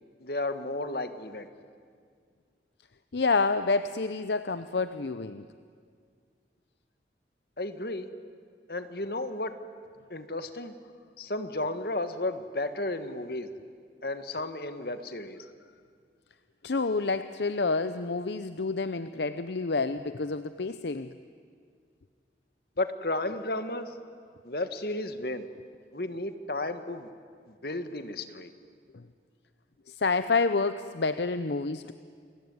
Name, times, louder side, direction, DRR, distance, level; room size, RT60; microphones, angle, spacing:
voice 1, 0.2-1.5 7.6-8.1 8.7-9.5 10.1-10.7 11.2-13.5 14.0-15.4 22.8-24.0 24.4-25.5 25.9-27.1 27.5-28.5, left 2 dB, 60° left, 9 dB, 1.6 m, -33 dB
voice 2, 3.1-5.5 16.6-21.1 28.9-29.1 29.9-31.9, left 3 dB, 75° left, 12 dB, 0.7 m, -28 dB
29.0 x 21.5 x 9.6 m, 2.1 s
head